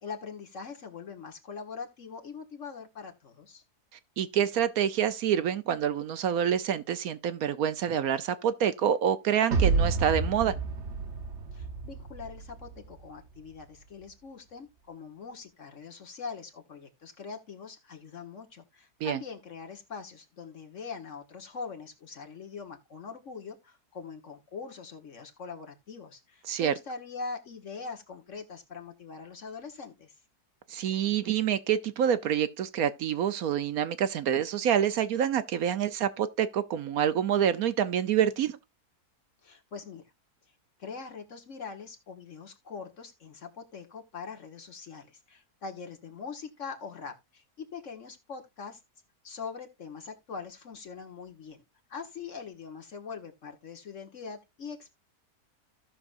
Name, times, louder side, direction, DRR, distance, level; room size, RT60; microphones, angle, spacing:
voice 1, 0.0-3.6 11.5-30.2 39.4-40.1 40.8-48.8 49.2-51.6 51.9-54.9, left 5 dB, 50° left, 1.7 m, -42 dB
voice 2, 4.2-10.5 19.0-19.2 26.5-26.7 30.7-38.6, right 9 dB, 70° right, 1.1 m, -27 dB
sound 1, 9.5-12.8, right 4 dB, 50° right, 1.2 m, -29 dB
16.0 x 6.1 x 2.5 m
omnidirectional pair, 1.7 m